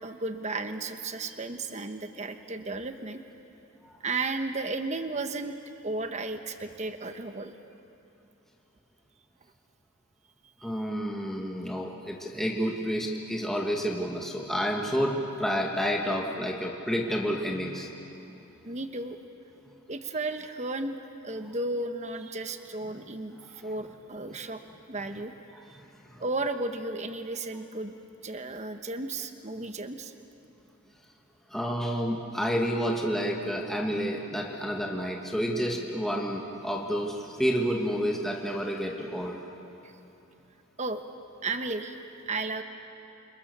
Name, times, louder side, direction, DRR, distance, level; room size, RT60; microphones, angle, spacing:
voice 1, 0.0-3.2 4.0-5.6 5.8-7.6 10.6-10.8 18.6-19.2 19.9-24.6 24.9-25.3 25.7-25.8 26.2-27.9 28.2-30.1 39.8-39.9 40.8-41.0 41.4-42.0 42.3-42.6, right 2 dB, 30° right, 7 dB, 1.2 m, -34 dB
voice 2, 10.6-17.9 26.1-26.2 31.5-39.4, equal, ahead, -1 dB, 2.0 m, -29 dB
29.5 x 28.0 x 6.9 m, 2.9 s
head